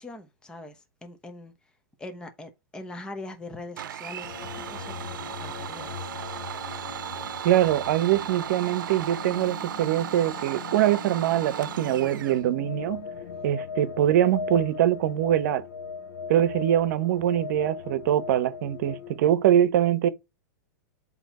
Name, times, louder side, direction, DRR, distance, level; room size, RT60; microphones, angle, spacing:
voice 1, 0.0-1.5 2.0-6.4 13.3-13.5, left 2 dB, 10° left, 1.0 m, -42 dB
Domestic sounds home sounds, 3.8-12.4, right 10 dB, 80° right, 0.7 m, -36 dB
sound 1, 4.2-19.2, left 6 dB, 90° left, 0.8 m, -39 dB
voice 2, 7.4-13.1 13.4-15.6 16.3-20.1, right 11 dB, 60° right, 0.9 m, -23 dB
7.7 x 3.0 x 4.2 m
supercardioid pair, 145°, 11 cm